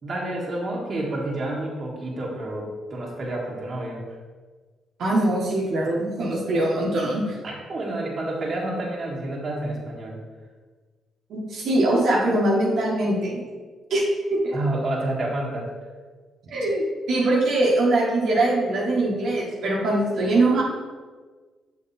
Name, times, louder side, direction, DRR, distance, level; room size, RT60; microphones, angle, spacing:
voice 1, 0.0-4.0 7.4-10.2 14.5-15.7, right 1 dB, 45° right, -2 dB, 1.7 m, -29 dB
voice 2, 5.0-7.4 11.3-13.4 13.9-14.0 14.3-14.6 16.5-20.6, right 2 dB, 70° right, -4 dB, 1.5 m, -22 dB
6.9 x 4.8 x 4.3 m, 1.4 s
cardioid pair, 90°, 0 cm